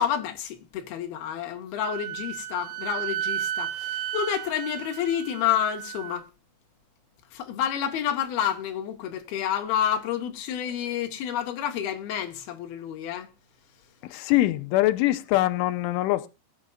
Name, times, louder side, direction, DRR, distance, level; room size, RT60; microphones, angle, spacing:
voice 1, 0.0-6.3 7.3-13.3, left 9 dB, 60° left, 3.3 m, -29 dB
Wind instrument woodwind instrument, 1.8-6.2, right 11 dB, 85° right, 3.6 m, -33 dB
voice 2, 14.0-16.3, left 16 dB, 90° left, 3.3 m, -23 dB
22.0 x 9.3 x 2.5 m
omnidirectional pair, 5.5 m